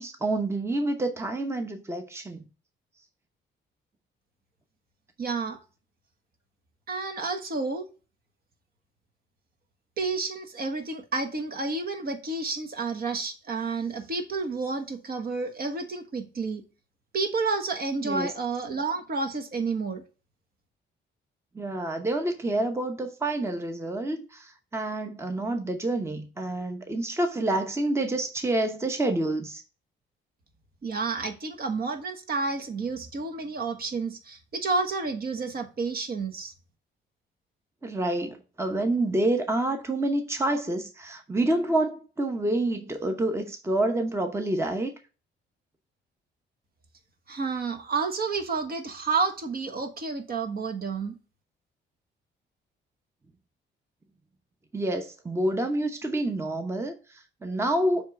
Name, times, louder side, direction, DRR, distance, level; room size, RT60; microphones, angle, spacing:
voice 1, 0.0-2.4 18.0-18.3 21.5-29.6 37.8-44.9 54.7-58.0, right 1 dB, 15° right, 0.8 m, -28 dB
voice 2, 5.2-5.6 6.9-7.9 10.0-16.6 17.1-20.0 30.8-36.5 47.3-51.2, right 4 dB, 50° right, 1.3 m, -30 dB
7.3 x 3.2 x 6.0 m
cardioid pair, 90°, 20 cm